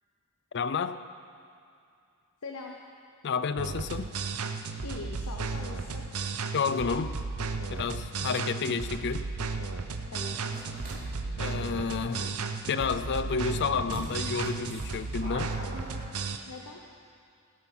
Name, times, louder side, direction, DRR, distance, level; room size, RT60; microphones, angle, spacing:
voice 1, 0.5-1.0 3.2-4.1 6.5-7.2 7.7-9.3 11.4-12.4 12.7-15.5, left 5 dB, 50° left, 13 dB, 0.5 m, -30 dB
voice 2, 2.4-2.8 4.8-6.1 8.1-8.4 10.1-10.6 16.5-16.8, left 3 dB, 85° left, 1 dB, 1.0 m, -42 dB
sound 1, 3.6-16.4, right 4 dB, 70° right, 0.8 m, -34 dB
sound 2, 10.1-13.6, left 1 dB, 10° left, 2.8 m, -50 dB
sound 3, 10.5-11.0 13.2-13.3 13.9-16.4, equal, 40° right, 3.1 m, -42 dB
17.0 x 9.1 x 6.1 m, 2.4 s
head